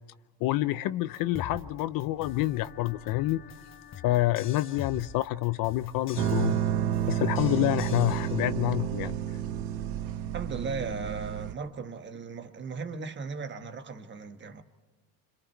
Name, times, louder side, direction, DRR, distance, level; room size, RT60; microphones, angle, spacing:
voice 1, 0.4-3.4 4.0-6.6 7.1-9.2, left 16 dB, 50° left, 0.6 m, -27 dB
sound 1, 1.1-8.5, left 6 dB, 25° left, 1.2 m, -45 dB
sound 2, 6.2-11.5, right 10 dB, 80° right, 1.3 m, -30 dB
voice 2, 10.3-14.6, right 4 dB, 25° right, 1.4 m, -37 dB
29.5 x 26.5 x 4.5 m
cardioid pair, 145°, 45 cm